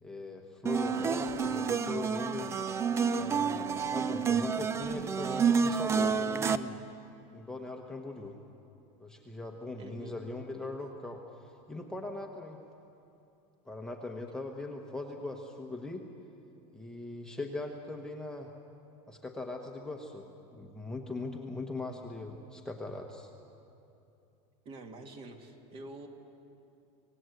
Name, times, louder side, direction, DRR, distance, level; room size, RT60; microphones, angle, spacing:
voice 1, 0.0-2.5 3.2-6.8 7.3-8.4 9.0-12.6 13.6-16.1 16.7-18.5 19.1-20.3 20.5-23.3, left 2 dB, 5° left, 1 dB, 1.1 m, -40 dB
sound 1, 0.7-6.6, right 6 dB, 15° right, 0.5 m, -29 dB
voice 2, 9.8-10.1 24.7-26.1, right 2 dB, 30° right, 4 dB, 2.0 m, -46 dB
26.0 x 18.0 x 7.9 m, 2.8 s
supercardioid pair, 160°, 17 cm